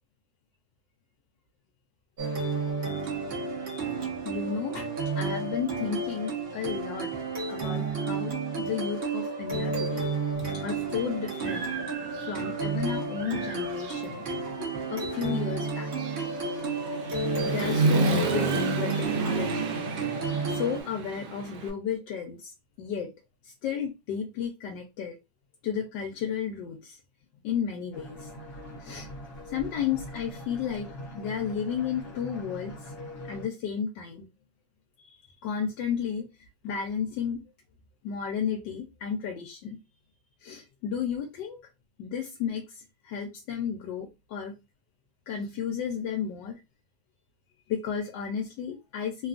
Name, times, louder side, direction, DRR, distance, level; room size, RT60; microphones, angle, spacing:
sound 1, 2.2-20.8, right 4 dB, 40° right, 0.9 m, -32 dB
voice 1, 4.2-7.1 7.5-10.1 10.4-11.7 12.3-14.2 14.9-15.9 17.4-18.5 18.8-19.8 20.5-22.5 22.8-23.1 23.6-25.2 25.6-27.0 27.4-28.3 28.8-29.1 29.4-32.7 33.3-34.3 35.4-36.3 36.6-37.4 38.0-39.8 40.4-41.6 42.0-42.6 43.0-44.5 45.3-46.6 47.7-49.3, left 7 dB, 75° left, 1.2 m, -33 dB
Human voice / Motorcycle, 10.4-10.5 11.0-12.8 13.1-21.7, right 3 dB, 70° right, 1.3 m, -31 dB
sound 2, 27.9-33.5, equal, 45° left, 0.9 m, -42 dB
3.4 x 2.3 x 2.4 m
omnidirectional pair, 2.1 m